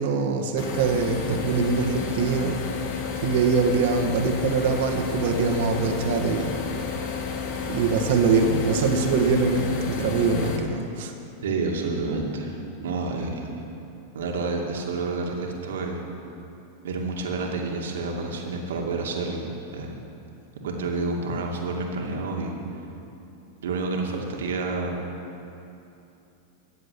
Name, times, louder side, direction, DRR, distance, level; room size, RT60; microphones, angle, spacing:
voice 1, 0.0-2.6 3.2-6.5 7.7-11.1, right 4 dB, 65° right, 4 dB, 1.7 m, -23 dB
sound 1, 0.6-10.6, left 6 dB, 55° left, 1.9 m, -31 dB
voice 2, 11.4-13.5 14.1-16.0 16.8-19.4 19.7-20.0 20.6-22.6 23.6-25.1, right 3 dB, 85° right, 1 dB, 2.3 m, -29 dB
14.0 x 8.0 x 8.5 m, 2.8 s
hypercardioid pair, 120°, 0 cm